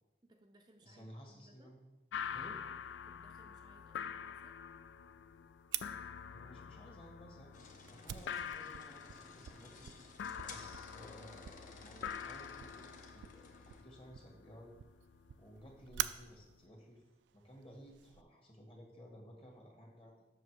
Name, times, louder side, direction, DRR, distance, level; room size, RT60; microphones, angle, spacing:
voice 1, 0.3-1.7 3.0-4.5, right 1 dB, 25° right, 2 dB, 0.5 m, -65 dB
voice 2, 0.8-1.8 2.3-2.6 6.3-7.5 7.9-9.9 10.4-14.7 15.4-17.1 17.3-20.3, equal, 30° left, 1 dB, 1.6 m, -56 dB
sound 1, 2.1-16.6, left 7 dB, 90° left, 0.3 m, -47 dB
Fire, 5.7-18.2, right 13 dB, 80° right, 0.3 m, -47 dB
sound 2, 7.5-13.8, left 3 dB, 45° left, 0.9 m, -56 dB
7.3 x 5.8 x 4.7 m, 1.0 s
head